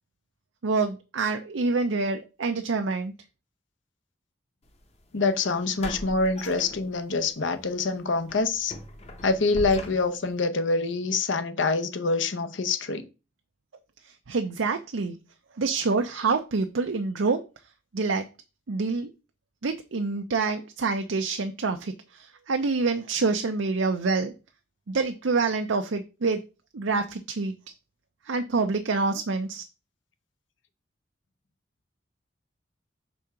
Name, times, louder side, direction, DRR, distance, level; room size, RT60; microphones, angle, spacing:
voice 1, 0.6-3.1 14.0-15.2 15.5-17.4 17.9-18.3 18.7-19.1 19.6-24.3 24.9-26.4 26.7-27.5 28.2-29.6, right 4 dB, 85° right, 0.6 m, -27 dB
sound 1, 4.7-4.8 5.8-7.3 7.7-7.8 8.3-10.4, left 1 dB, 35° left, 0.8 m, -39 dB
voice 2, 5.1-8.7 9.2-13.0, left 3 dB, 80° left, 0.8 m, -26 dB
5.2 x 3.7 x 5.7 m
head